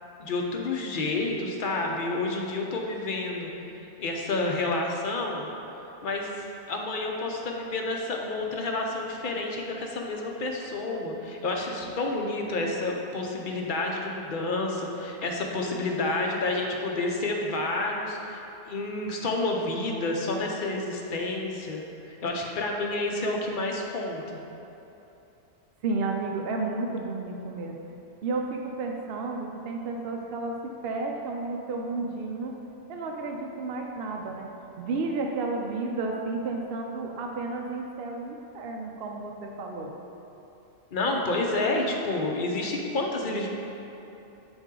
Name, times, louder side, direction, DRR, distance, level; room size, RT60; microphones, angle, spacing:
voice 1, 0.2-5.5 6.0-6.3 6.7-24.2 40.9-43.5, left 2 dB, 50° left, 0 dB, 0.8 m, -29 dB
voice 2, 25.8-27.8 28.2-30.6 30.8-32.5 32.9-34.5 34.8-39.9, right 3 dB, 60° right, 1 dB, 0.7 m, -32 dB
8.0 x 4.3 x 3.7 m, 2.9 s
omnidirectional pair, 1.3 m